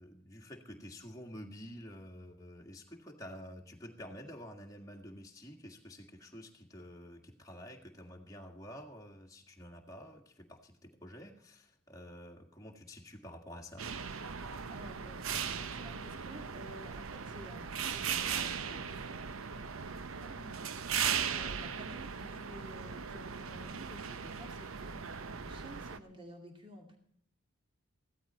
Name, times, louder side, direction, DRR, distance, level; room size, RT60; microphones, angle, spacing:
voice 1, 0.0-13.9, equal, 15° left, 1 dB, 1.8 m, -49 dB
sound 1, 13.8-26.0, right 7 dB, 75° right, 0.8 m, -38 dB
voice 2, 14.7-27.0, equal, 25° right, 2 dB, 2.4 m, -52 dB
16.0 x 12.5 x 4.3 m, 0.67 s
head